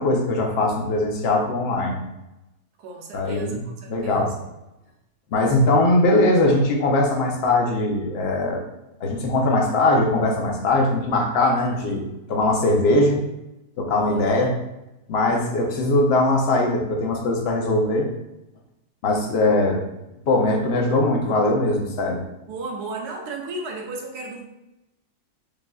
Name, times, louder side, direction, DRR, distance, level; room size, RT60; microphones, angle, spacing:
voice 1, 0.0-2.0 3.1-3.6 3.9-4.3 5.3-8.6 9.0-13.2 13.8-14.5 15.1-18.1 19.0-19.8 20.3-22.2, left 2 dB, 55° left, 1 dB, 0.7 m, -21 dB
voice 2, 2.8-4.4 13.9-14.3 22.5-24.4, right 2 dB, 85° right, 0 dB, 1.3 m, -34 dB
4.9 x 2.5 x 2.3 m, 0.94 s
omnidirectional pair, 1.7 m